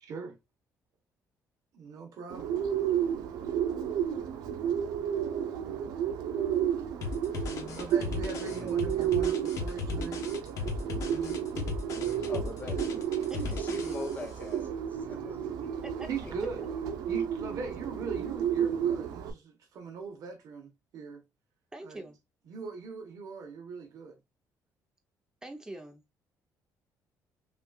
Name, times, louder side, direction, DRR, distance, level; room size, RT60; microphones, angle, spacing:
voice 1, 0.0-0.4 1.7-2.6 7.7-10.3 16.1-16.6 17.1-21.2 21.8-22.0 22.5-24.2, right 5 dB, 60° right, 0.9 m, -40 dB
Bird, 2.3-19.3, right 9 dB, 85° right, 0.7 m, -32 dB
sound 1, 7.0-14.3, left 4 dB, 55° left, 1.1 m, -36 dB
voice 2, 12.2-13.0 13.3-16.7, left 3 dB, 25° left, 0.7 m, -43 dB
voice 3, 21.7-22.2 25.4-26.2, right 1 dB, 10° right, 0.7 m, -44 dB
5.7 x 2.4 x 2.3 m
cardioid pair, 150°, 7 cm